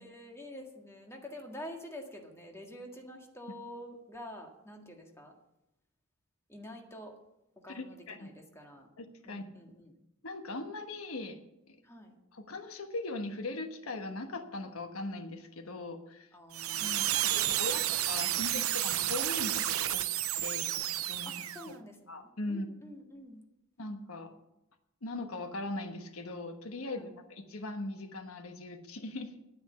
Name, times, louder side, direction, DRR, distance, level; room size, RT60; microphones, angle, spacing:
voice 1, 0.0-5.3 6.5-7.1 7.6-8.9 9.3-10.0 11.8-12.2 16.3-17.8 21.2-23.4 26.9-27.1, left 1 dB, 15° left, 2 dB, 1.8 m, -48 dB
voice 2, 7.7-8.3 9.0-9.4 10.2-11.4 11.7-11.8 12.3-16.3 16.8-21.3 22.1-22.7 23.8-24.3 25.0-29.4, left 2 dB, 85° left, 7 dB, 1.2 m, -40 dB
sound 1, 16.5-21.7, right 13 dB, 85° right, 0.6 m, -31 dB
10.5 x 9.5 x 6.9 m, 0.87 s
head